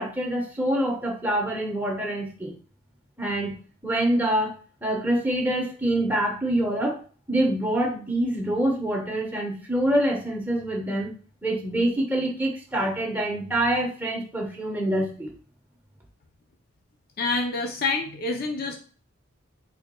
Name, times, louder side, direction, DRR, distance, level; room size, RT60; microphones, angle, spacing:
voice 1, 0.0-2.5 3.2-3.5 3.8-4.5 4.8-7.0 7.3-11.1 11.4-15.3, right 1 dB, 10° right, -1 dB, 1.0 m, -25 dB
voice 2, 17.2-18.8, left 3 dB, 45° left, 3 dB, 0.5 m, -27 dB
4.6 x 4.1 x 2.3 m, 0.39 s
head